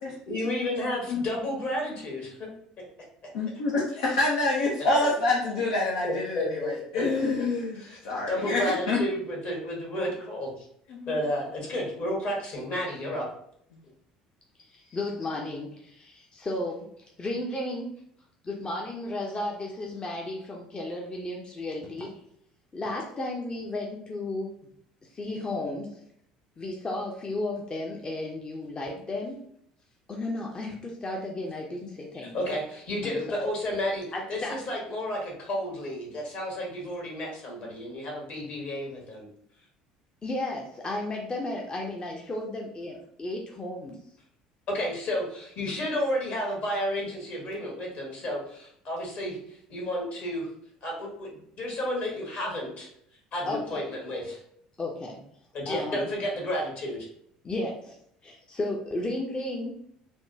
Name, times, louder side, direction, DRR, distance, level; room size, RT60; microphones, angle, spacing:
voice 1, 0.3-2.5 5.0-5.1 6.0-7.0 7.4-7.5 7.8-8.0 8.3-10.6 11.1-13.3 32.1-34.0 34.3-39.3 44.7-49.4 49.7-50.5 50.8-51.3 51.6-52.9 53.3-54.4 55.5-57.1, left 1 dB, 55° left, -1 dB, 1.5 m, -31 dB
voice 2, 3.3-7.8 8.0-9.0 10.9-11.1, left 2 dB, 75° left, -3 dB, 0.5 m, -27 dB
voice 3, 14.7-16.9 17.2-18.0 18.4-22.2 22.7-24.5 25.1-26.0 26.6-29.4 30.1-32.3 33.0-33.4 34.1-34.6 40.2-44.0 53.5-53.8 54.8-55.2 55.7-56.1 57.4-59.8, left 2 dB, 25° left, -1 dB, 0.6 m, -34 dB
3.4 x 2.2 x 2.7 m, 0.68 s
hypercardioid pair, 65°, 3 cm